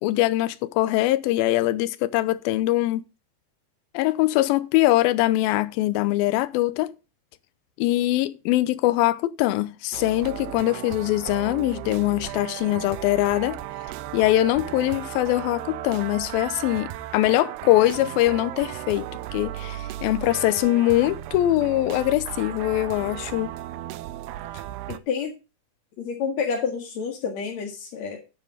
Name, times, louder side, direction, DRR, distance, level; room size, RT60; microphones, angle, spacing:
voice 1, 0.0-3.0 3.9-6.9 7.8-13.6 14.1-23.5, left 16 dB, 75° left, 2.4 m, -22 dB
sound 1, 9.9-25.0, right 14 dB, 85° right, 2.7 m, -35 dB
voice 2, 24.9-25.3 26.0-28.2, left 6 dB, 50° left, 2.8 m, -29 dB
10.0 x 9.6 x 3.8 m
omnidirectional pair, 4.6 m